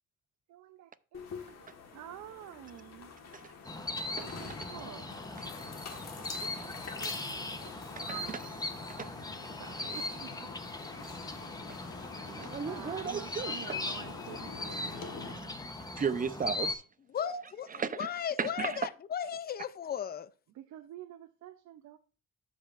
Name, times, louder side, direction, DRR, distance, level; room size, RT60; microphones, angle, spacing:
voice 1, 0.5-3.1 4.1-5.1 5.9-8.5 9.6-10.5 12.7-15.5 20.5-22.0, right 12 dB, 70° right, 0.6 m, -49 dB
sound 1, 1.1-15.3, left 5 dB, 60° left, 1.6 m, -47 dB
sound 2, 3.6-16.7, left 2 dB, 15° left, 0.9 m, -39 dB
voice 2, 12.3-13.6 16.0-16.8 17.2-17.4 17.7-18.1 18.4-18.8, right 6 dB, 30° right, 0.6 m, -35 dB
voice 3, 17.1-20.3, left 9 dB, 30° left, 0.5 m, -36 dB
13.0 x 5.1 x 2.5 m
cardioid pair, 90°, 30 cm